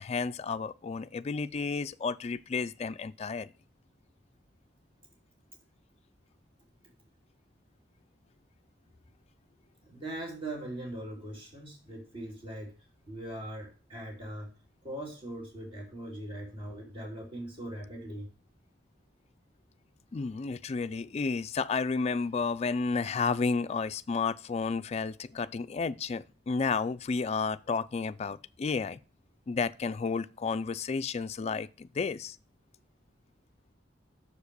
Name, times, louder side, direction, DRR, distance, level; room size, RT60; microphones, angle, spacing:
voice 1, 0.0-3.5 20.1-29.0 29.5-32.4, left 4 dB, 35° left, 0.3 m, -32 dB
voice 2, 9.8-12.7 13.1-14.5 14.8-18.3, right 1 dB, 30° right, 2.6 m, -40 dB
6.6 x 4.9 x 6.6 m
head